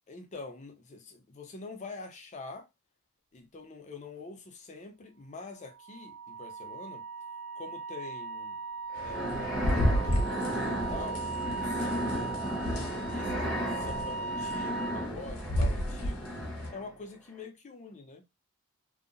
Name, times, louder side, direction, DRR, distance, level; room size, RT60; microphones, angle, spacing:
voice 1, 0.1-2.7 3.3-7.0 7.6-8.6 9.0-11.2 11.5-12.3 12.9-16.3 16.7-18.2, left 3 dB, 30° left, 0.5 m, -45 dB
Wind instrument woodwind instrument, 5.6-15.1, right 4 dB, 70° right, 1.3 m, -38 dB
sound 1, 8.9-17.0, equal, ahead, 0.7 m, -35 dB
sound 2, 9.0-16.7, equal, 70° left, 0.7 m, -33 dB
2.7 x 2.0 x 2.4 m
head